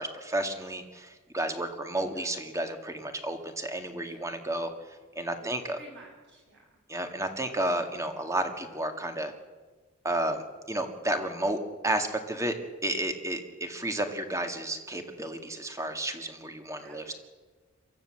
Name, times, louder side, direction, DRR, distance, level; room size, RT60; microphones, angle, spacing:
voice 1, 0.0-4.7 5.1-5.8 6.9-9.3 10.0-10.4 10.7-12.6 12.8-17.1, right 1 dB, 15° right, 6 dB, 1.9 m, -32 dB
voice 2, 2.0-2.5 4.0-4.2 5.4-6.8 16.8-17.2, right 2 dB, 60° right, -1 dB, 7.9 m, -53 dB
23.5 x 15.0 x 7.6 m, 1.4 s
head